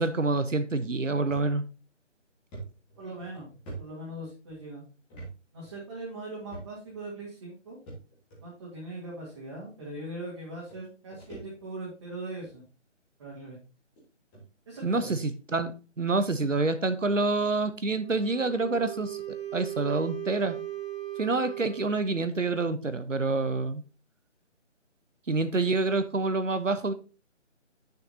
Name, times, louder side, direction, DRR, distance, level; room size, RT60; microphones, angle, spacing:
voice 1, 0.0-1.6 14.8-19.2 19.5-20.6 21.2-23.8 25.3-26.9, right 3 dB, 85° right, 11 dB, 0.9 m, -27 dB
sound 1, 1.3-1.5 1.9-2.0 2.5-4.6 5.1-5.3 5.6-5.7 6.5-7.0 7.9-8.4 9.3-9.4 10.4-10.5 10.7-11.9 12.3-12.6 13.4-13.5 14.0-14.1 14.3-14.4 14.9-15.1, right 3 dB, 5° left, 1.4 m, -45 dB
voice 2, 3.0-4.8 5.5-7.8 8.4-12.6 13.2-13.6 14.7-15.2, right 2 dB, 20° right, -6 dB, 2.0 m, -40 dB
Wind instrument woodwind instrument, 18.0-22.3, right 13 dB, 55° right, 2.8 m, -38 dB
9.1 x 6.6 x 2.7 m, 0.34 s
figure-of-eight pair, 155°, 37 cm